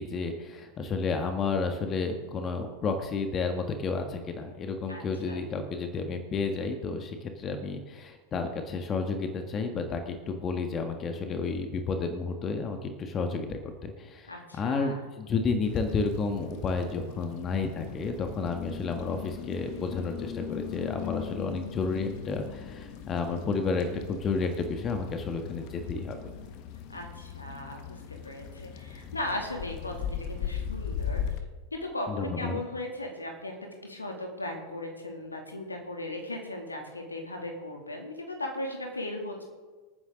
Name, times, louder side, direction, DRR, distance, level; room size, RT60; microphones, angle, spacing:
voice 1, 0.0-26.2 32.1-32.6, left 4 dB, 25° left, 6 dB, 1.7 m, -31 dB
voice 2, 4.9-5.4 14.3-15.0 26.9-31.2 31.7-33.5 33.8-39.4, left 1 dB, 80° left, 2 dB, 2.7 m, -37 dB
sound 1, 15.6-31.4, left 8 dB, 45° left, 1.4 m, -39 dB
26.0 x 9.6 x 3.8 m, 1.3 s
figure-of-eight pair, 90°, 0 cm